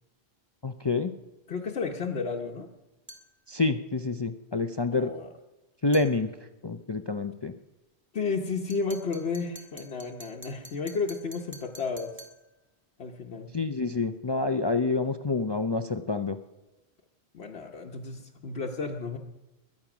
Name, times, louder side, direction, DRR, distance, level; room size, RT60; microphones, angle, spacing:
voice 1, 0.6-1.1 3.5-5.1 5.8-6.3 6.6-7.5 13.5-16.4, left 3 dB, 35° left, 9 dB, 0.4 m, -27 dB
voice 2, 1.5-2.7 4.9-5.3 8.1-12.2 13.0-13.5 17.3-19.2, left 4 dB, 70° left, 0 dB, 1.2 m, -32 dB
sound 1, 3.1-3.3 5.9-6.1 8.7-12.4, right 1 dB, 10° right, 1.7 m, -48 dB
22.0 x 8.6 x 6.1 m, 1.0 s
omnidirectional pair, 1.1 m